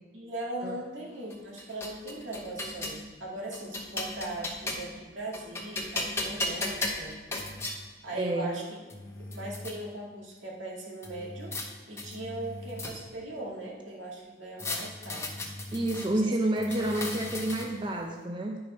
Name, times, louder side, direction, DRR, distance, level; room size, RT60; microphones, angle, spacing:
voice 1, 0.1-7.1 8.0-8.6 9.2-11.6 11.9-15.3 16.0-16.3, right 1 dB, 80° right, -3 dB, 2.1 m, -39 dB
sound 1, 1.3-3.0 3.5-5.0 5.3-7.8 8.5-8.6 8.9-9.7 11.0-11.7 12.0-13.2 14.6-16.1 16.6-17.9, left 2 dB, 15° left, 0.9 m, -36 dB
voice 2, 8.1-8.5 15.7-18.6, right 1 dB, 25° right, 1 dB, 0.6 m, -29 dB
10.5 x 4.8 x 5.2 m, 1.3 s
head